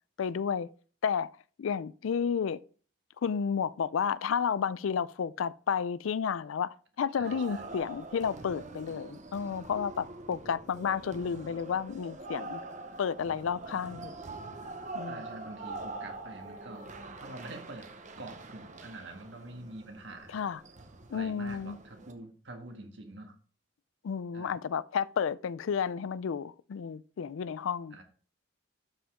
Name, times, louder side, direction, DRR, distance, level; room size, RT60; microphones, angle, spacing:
voice 1, 0.2-0.7 1.0-1.3 1.6-2.6 3.2-12.6 13.0-14.2 14.9-15.2 20.3-20.6 21.1-21.8 24.0-28.0, left 7 dB, 75° left, 0.4 m, -31 dB
sound 1, 7.2-22.1, right 2 dB, 35° right, 0.9 m, -44 dB
voice 2, 7.2-7.7 15.1-16.9 17.2-17.9 18.2-20.4 21.1-23.4 24.3-24.6 27.9-28.0, right 2 dB, 60° right, 1.6 m, -46 dB
12.0 x 5.1 x 3.6 m
head